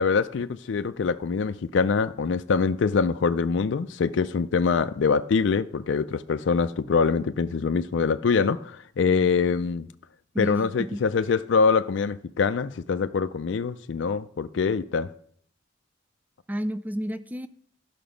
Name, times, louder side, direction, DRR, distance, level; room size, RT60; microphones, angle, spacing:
voice 1, 0.0-9.9 10.4-15.1, left 5 dB, 65° left, 0.4 m, -24 dB
voice 2, 10.3-11.0 16.5-17.5, equal, 10° right, 0.3 m, -31 dB
11.5 x 5.8 x 5.1 m
head